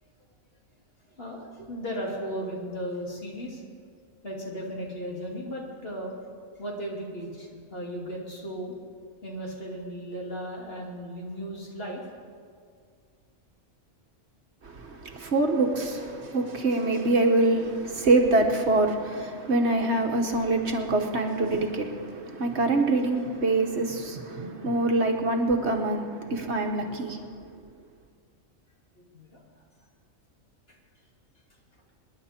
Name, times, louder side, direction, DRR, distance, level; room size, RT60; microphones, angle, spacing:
voice 1, 1.1-3.6 4.2-6.1 6.6-8.8 9.2-12.0 29.0-29.4, equal, 45° left, -2 dB, 2.9 m, -36 dB
voice 2, 14.6-27.3, right 2 dB, 55° right, 3 dB, 1.4 m, -25 dB
26.5 x 10.5 x 4.4 m, 2.1 s
omnidirectional pair, 1.4 m